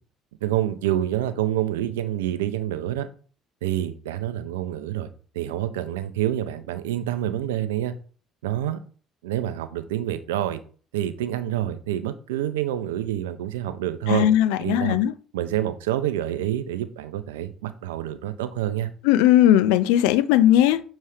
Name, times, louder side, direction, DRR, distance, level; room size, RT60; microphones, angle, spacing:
voice 1, 0.4-3.1 3.6-5.1 5.3-7.9 8.4-8.8 9.2-10.6 10.9-14.3 14.6-15.0 15.3-18.9, right 12 dB, 85° right, 0.6 m, -27 dB
voice 2, 14.1-15.1 19.0-20.8, left 12 dB, 75° left, 0.4 m, -18 dB
6.9 x 3.2 x 4.9 m
hypercardioid pair, 60°, 0 cm